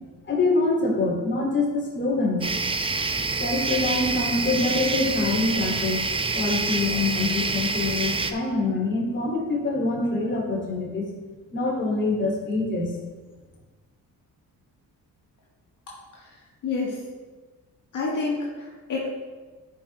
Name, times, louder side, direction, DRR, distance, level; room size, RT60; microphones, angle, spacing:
voice 1, 0.3-2.4 3.4-6.0 6.3-11.1 11.5-12.9, left 3 dB, 30° left, -4 dB, 2.6 m, -25 dB
sound 1, 2.4-8.3, right 3 dB, 15° right, 0.4 m, -27 dB
voice 2, 16.6-17.0 17.9-19.1, left 3 dB, 60° left, -5 dB, 1.7 m, -28 dB
12.0 x 5.0 x 3.3 m, 1.3 s
cardioid pair, 105°, 35 cm